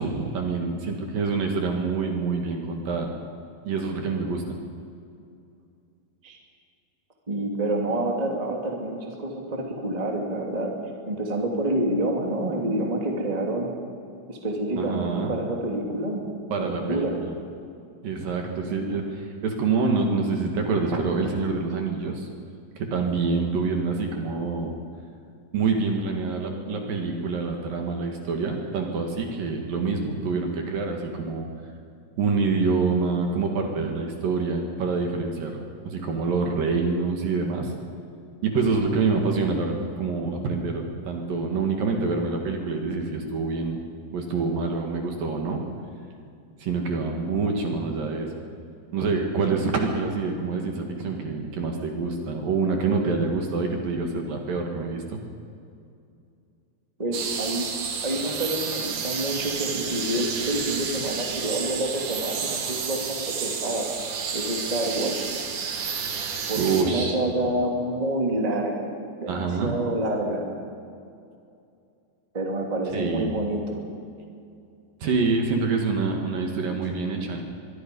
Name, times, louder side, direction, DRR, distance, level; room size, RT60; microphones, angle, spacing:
voice 1, 0.0-3.1 3.6-4.6 14.8-15.3 16.5-17.3 18.0-22.3 22.8-24.8 25.5-31.5 32.2-37.7 38.4-43.8 44.1-45.7 46.6-48.3 48.9-55.2 66.6-67.2 69.3-69.8 72.9-73.4 75.0-77.4, right 4 dB, 60° right, 2 dB, 3.3 m, -26 dB
voice 2, 7.3-10.7 11.1-13.7 14.3-16.2 16.6-17.2 57.0-57.7 58.0-63.9 64.3-65.3 66.5-68.9 69.2-70.4 72.3-73.8, right 1 dB, 10° right, 0 dB, 1.9 m, -28 dB
sound 1, 57.1-66.8, right 6 dB, 85° right, 4.5 m, -31 dB
24.0 x 23.0 x 5.5 m, 2.5 s
omnidirectional pair, 5.0 m